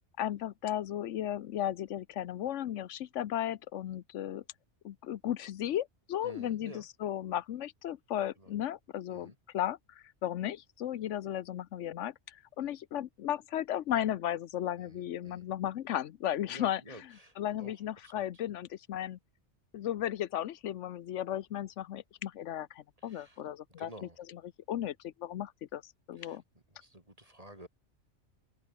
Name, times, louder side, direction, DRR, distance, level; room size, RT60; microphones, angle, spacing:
voice 1, 0.2-4.4 4.8-9.8 10.2-16.8 17.4-19.2 19.7-23.9 24.7-25.8 26.1-26.4, left 11 dB, 85° left, 1.0 m, -35 dB
voice 2, 6.2-6.9 8.4-8.5 9.1-9.4 14.8-15.5 16.5-17.8 18.0-18.2 23.0-23.4 23.8-24.2 26.2-26.4 26.7-27.7, right 1 dB, 30° right, 5.8 m, -51 dB
omnidirectional pair, 1.2 m